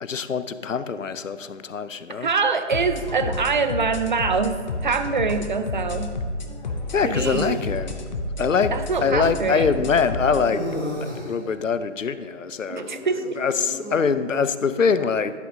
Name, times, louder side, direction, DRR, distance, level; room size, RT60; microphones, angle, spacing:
voice 1, 0.0-2.3 6.9-7.9 8.4-8.7 9.0-10.7 11.0-13.1 13.4-15.4, left 5 dB, 90° left, 13 dB, 0.6 m, -24 dB
voice 2, 2.1-6.2 7.0-7.6 8.7-9.7 12.7-13.4, right 4 dB, 40° right, 10 dB, 0.6 m, -24 dB
sound 1, 2.7-10.5, left 2 dB, 35° left, 0.7 m, -30 dB
sound 2, 6.4-7.6 8.6-8.7 10.3-11.4 12.7-14.0, left 1 dB, ahead, 1.2 m, -34 dB
11.0 x 8.2 x 2.7 m, 2.2 s
figure-of-eight pair, 145°, 37 cm